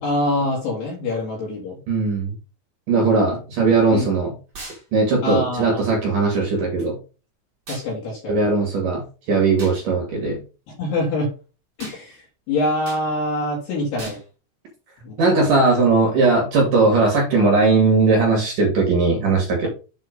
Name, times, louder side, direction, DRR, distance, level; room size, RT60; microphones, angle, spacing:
voice 1, 0.0-1.8 3.9-4.1 5.2-5.8 7.7-8.4 10.8-11.3 11.8-14.2 15.0-15.6, left 1 dB, 60° left, -3 dB, 3.6 m, -25 dB
voice 2, 1.9-2.3 2.9-4.3 4.9-6.9 8.3-10.4 15.2-19.7, right 3 dB, 55° right, 0 dB, 2.6 m, -18 dB
sound 1, 4.5-4.8 7.7-7.9 9.6-9.8 11.8-12.0 12.8-13.0 14.0-14.2, right 2 dB, 35° right, 1.7 m, -37 dB
8.0 x 4.2 x 5.2 m, 0.34 s
omnidirectional pair, 6.0 m